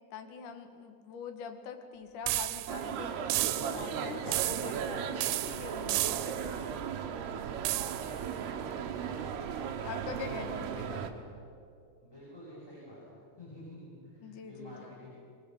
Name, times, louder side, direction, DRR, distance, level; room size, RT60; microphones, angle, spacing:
voice 1, 0.1-6.8 9.8-11.3 14.2-14.9, left 6 dB, 60° left, 6 dB, 2.2 m, -44 dB
sound 1, 2.3-2.9 3.3-3.9 4.3-4.9 5.2-6.5 7.7-8.2, right 17 dB, 85° right, 3.4 m, -33 dB
sound 2, 2.7-11.1, right 7 dB, 65° right, 2.9 m, -37 dB
sound 3, 5.7-11.1, right 6 dB, 45° right, 3.4 m, -48 dB
voice 2, 9.1-10.5 12.0-15.1, left 1 dB, 5° left, -7 dB, 6.5 m, -51 dB
23.5 x 22.5 x 7.9 m, 2.4 s
omnidirectional pair, 5.9 m